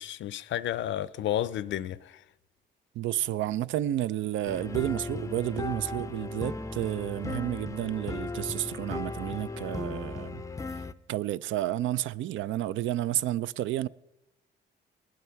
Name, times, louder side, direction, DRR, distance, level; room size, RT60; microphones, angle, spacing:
voice 1, 0.0-2.2, left 11 dB, 70° left, 0.5 m, -32 dB
voice 2, 3.0-10.4 11.1-13.9, right 13 dB, 75° right, 0.4 m, -31 dB
sound 1, 4.5-10.9, left 3 dB, 15° left, 0.4 m, -36 dB
18.5 x 7.7 x 5.7 m
cardioid pair, 90°, 20 cm